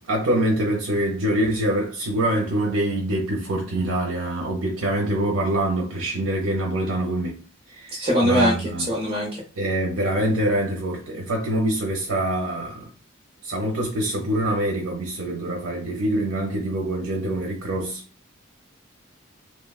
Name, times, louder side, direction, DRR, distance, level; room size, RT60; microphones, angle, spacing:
voice 1, 0.0-7.4 7.7-8.9 9.6-12.8 13.4-18.0, right 1 dB, 75° right, 0.6 m, -25 dB
voice 2, 7.9-9.4, equal, 30° right, 0.7 m, -22 dB
3.0 x 2.1 x 2.2 m
head